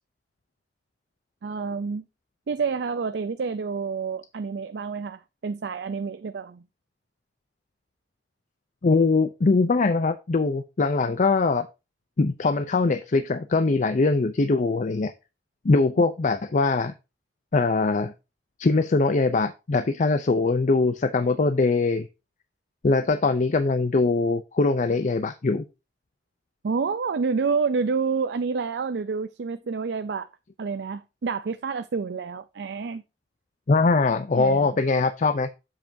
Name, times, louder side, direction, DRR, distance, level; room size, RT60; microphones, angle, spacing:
voice 1, 1.4-2.0 2.5-6.6 26.6-30.3 30.6-33.0 34.4-34.7, right 5 dB, 70° right, 0.4 m, -28 dB
voice 2, 8.8-11.7 12.2-15.1 15.6-16.9 17.5-18.1 18.6-22.1 22.8-25.6 33.7-35.5, left 3 dB, 45° left, 0.5 m, -22 dB
7.5 x 7.4 x 2.7 m
head